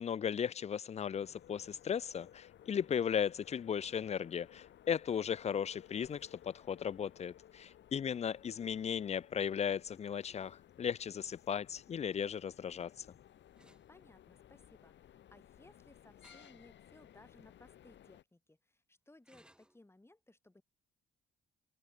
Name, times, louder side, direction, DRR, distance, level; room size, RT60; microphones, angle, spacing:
voice 1, 0.0-13.1, left 8 dB, 35° left, 0.4 m, -36 dB
sound 1, 1.2-18.2, left 11 dB, 65° left, 2.0 m, -59 dB
sound 2, 13.5-13.9 16.2-16.6 17.2-17.3 19.2-19.8, right 1 dB, 5° right, 2.6 m, -63 dB
voice 2, 13.9-20.6, left 2 dB, 10° left, 8.0 m, -62 dB
cardioid pair, 90°, 20 cm